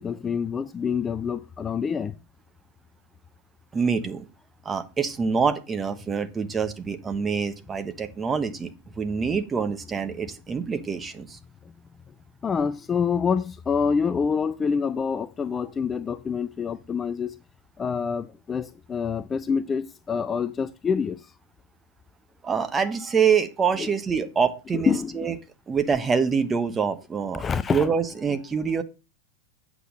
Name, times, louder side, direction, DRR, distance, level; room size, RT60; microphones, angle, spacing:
voice 1, 0.0-2.1 12.4-17.4 17.8-21.3 23.8-23.9 24.9-25.3 27.3-27.9, left 6 dB, 20° left, 0.4 m, -26 dB
voice 2, 3.7-4.3 4.6-11.4 22.4-25.3 25.7-27.4 27.7-28.8, right 6 dB, 15° right, 1.1 m, -25 dB
8.2 x 6.0 x 5.3 m
figure-of-eight pair, 90°, 0 cm